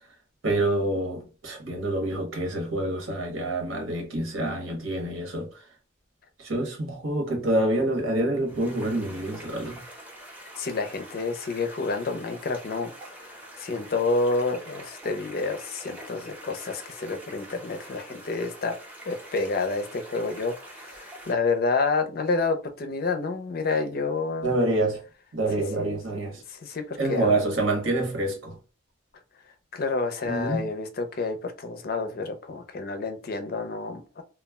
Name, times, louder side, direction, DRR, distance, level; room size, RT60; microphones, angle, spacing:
voice 1, 0.4-5.6 6.4-9.8 24.4-25.0 25.3-26.4 27.0-28.6 30.2-30.7, right 2 dB, 85° right, 1.0 m, -27 dB
sound 1, 8.4-21.3, right 1 dB, 10° right, 0.5 m, -45 dB
voice 2, 10.6-12.9 13.2-18.7 19.1-24.5 25.8-25.9 26.5-27.4 29.7-34.2, left 3 dB, 50° left, 0.4 m, -29 dB
2.2 x 2.1 x 3.3 m
head